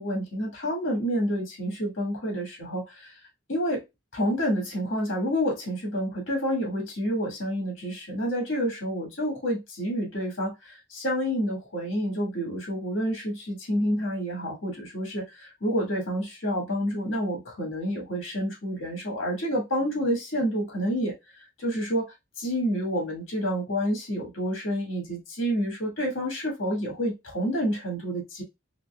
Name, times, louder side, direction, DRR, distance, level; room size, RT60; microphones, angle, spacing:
voice 1, 0.0-3.1 3.5-3.8 4.1-21.1 21.6-28.4, equal, 75° left, 1.6 m, -29 dB
3.9 x 2.9 x 2.2 m
head